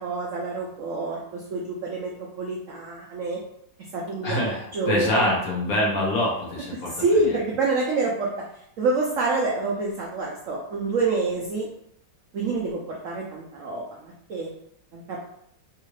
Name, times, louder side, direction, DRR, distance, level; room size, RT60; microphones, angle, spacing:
voice 1, 0.0-3.4 3.9-5.3 7.0-8.3 8.8-11.7 12.3-14.5 14.9-15.2, right 3 dB, 80° right, -3 dB, 0.7 m, -27 dB
voice 2, 4.2-7.4, left 1 dB, 60° left, -3 dB, 1.1 m, -25 dB
3.5 x 2.4 x 3.1 m, 0.74 s
omnidirectional pair, 2.0 m